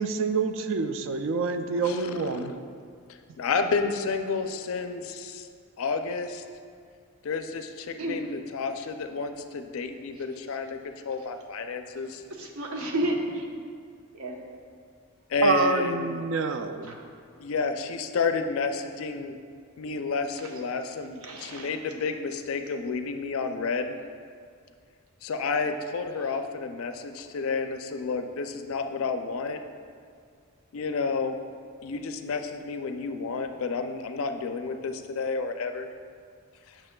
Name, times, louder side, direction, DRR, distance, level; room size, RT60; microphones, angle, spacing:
voice 1, 0.0-2.5 15.4-17.0, right 4 dB, 60° right, 8 dB, 0.3 m, -27 dB
voice 2, 1.8-2.5 3.4-5.5 5.8-6.4 7.2-10.8 11.0-12.2 15.3-16.2 17.4-19.4 19.8-24.0 25.2-29.6 30.7-31.4 31.8-35.9 36.7-36.8, left 4 dB, 70° left, 7 dB, 0.4 m, -30 dB
voice 3, 12.3-13.4 14.1-14.3 16.9-17.0 21.2-21.7, right 1 dB, 75° right, 0 dB, 0.9 m, -31 dB
8.7 x 6.0 x 2.2 m, 2.2 s
head